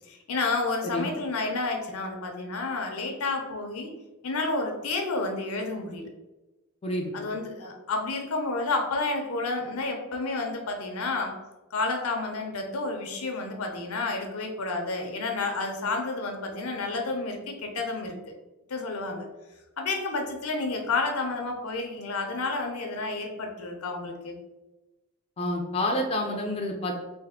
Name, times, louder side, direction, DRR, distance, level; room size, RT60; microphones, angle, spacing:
voice 1, 0.1-3.9 4.2-6.1 7.1-11.4 11.7-18.1 18.7-19.3 19.8-24.4, left 3 dB, 85° left, 3 dB, 0.7 m, -30 dB
voice 2, 25.4-27.0, left 1 dB, 30° left, 1 dB, 0.4 m, -28 dB
3.4 x 2.6 x 3.5 m, 1.1 s
head